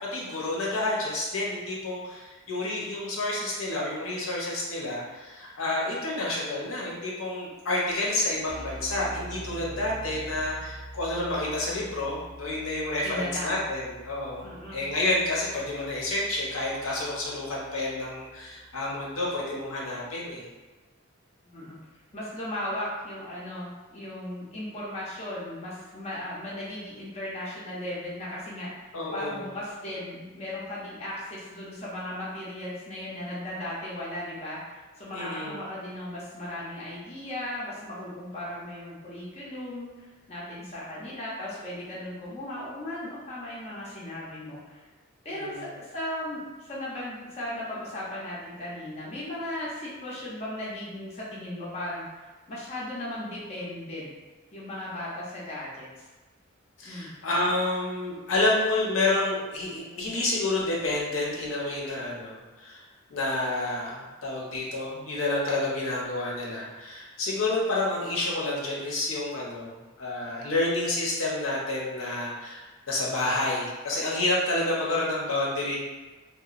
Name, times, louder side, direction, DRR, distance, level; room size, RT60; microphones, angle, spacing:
voice 1, 0.0-20.5 28.9-29.4 35.1-35.6 45.3-45.6 56.8-62.8 63.1-75.8, left 2 dB, 70° left, -4 dB, 0.6 m, -29 dB
Keyboard (musical), 7.9-8.0 8.2-18.8, right 1 dB, 85° right, 0.7 m, -45 dB
voice 2, 13.0-13.6 14.4-14.8 21.4-21.8 22.1-28.7 29.1-44.9 45.2-54.1 54.5-56.0 56.8-57.2, left 1 dB, 30° left, -7 dB, 0.5 m, -36 dB
2.9 x 2.1 x 2.4 m, 1.2 s
head